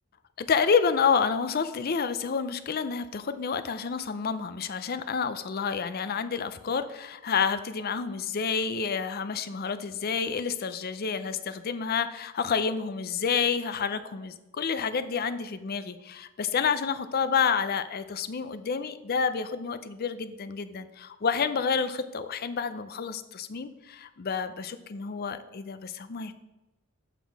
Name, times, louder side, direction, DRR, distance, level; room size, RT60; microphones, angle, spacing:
voice 1, 0.4-26.3, left 6 dB, 45° left, 12 dB, 0.5 m, -29 dB
7.3 x 6.0 x 4.6 m, 1.0 s
head